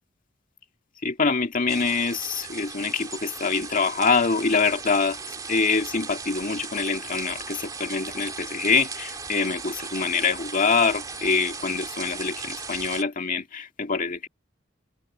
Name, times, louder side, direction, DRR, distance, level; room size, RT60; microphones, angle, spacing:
voice 1, 1.0-5.2 5.5-14.3, left 4 dB, 45° left, 2.1 m, -25 dB
sound 1, 1.7-13.0, right 4 dB, 20° right, 2.0 m, -37 dB
head